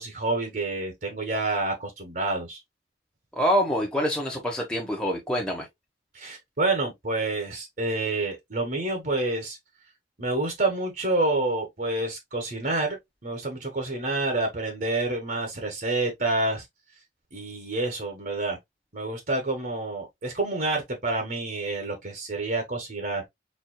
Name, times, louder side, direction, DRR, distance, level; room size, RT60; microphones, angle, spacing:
voice 1, 0.0-2.6 6.1-9.6 10.2-16.6 17.3-18.6 18.9-23.2, right 2 dB, 45° right, 1.2 m, -28 dB
voice 2, 3.4-5.6, equal, 5° left, 1.0 m, -25 dB
4.4 x 3.8 x 2.2 m
head